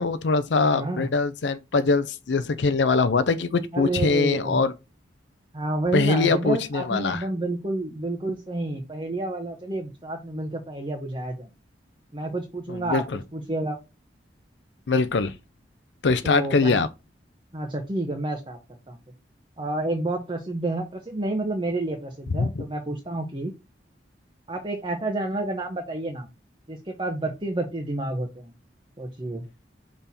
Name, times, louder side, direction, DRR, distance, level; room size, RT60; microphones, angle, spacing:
voice 1, 0.0-4.7 5.9-7.2 12.7-13.0 14.9-15.3 16.0-16.9 22.4-22.6, left 4 dB, 85° left, 0.5 m, -22 dB
voice 2, 0.6-1.1 3.7-4.6 5.5-11.5 12.1-13.0 13.3-13.8 16.2-16.8 17.5-18.6 18.9-19.0 19.6-23.5 24.5-26.3 26.7-28.5 29.0-29.4, right 2 dB, 30° right, 1.0 m, -29 dB
5.5 x 4.2 x 4.2 m
head